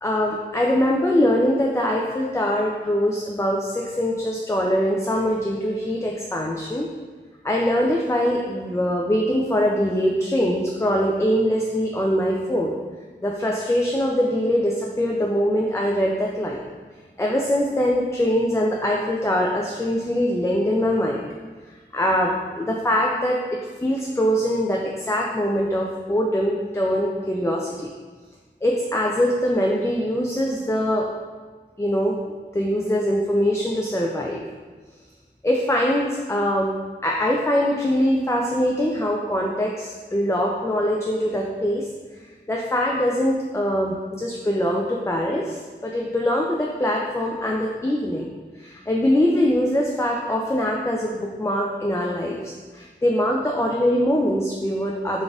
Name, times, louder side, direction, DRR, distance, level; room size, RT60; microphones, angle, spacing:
voice 1, 0.0-6.9 7.4-12.8 13.2-16.7 17.2-21.3 21.7-23.4 23.8-27.9 28.6-31.1 31.8-32.2 32.5-34.4 35.4-36.7 37.0-41.9 42.5-48.3 48.5-55.2, equal, 15° left, -2 dB, 0.4 m, -23 dB
3.9 x 2.5 x 3.5 m, 1.4 s
wide cardioid pair, 45°, 19 cm